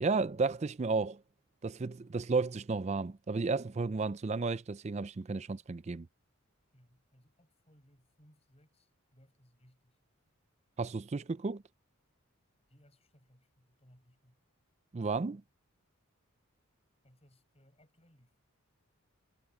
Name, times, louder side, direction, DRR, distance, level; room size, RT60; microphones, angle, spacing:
voice 1, 0.0-1.2 1.6-6.1 10.8-11.6 14.9-15.4, right 4 dB, 30° right, 0.4 m, -33 dB
voice 2, 6.7-10.0 12.7-14.4 17.0-18.4, equal, 25° left, 7.1 m, -65 dB
head